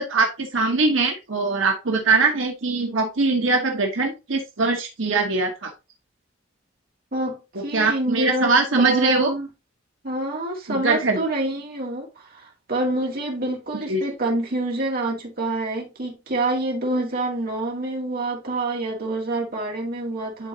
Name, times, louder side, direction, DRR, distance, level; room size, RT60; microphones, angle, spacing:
voice 1, 0.0-5.7 7.7-9.3 10.8-11.2 13.9-14.0, right 3 dB, 80° right, 1.2 m, -22 dB
voice 2, 7.1-9.5 10.0-20.5, right 2 dB, 50° right, 2.2 m, -27 dB
10.5 x 3.9 x 2.8 m
head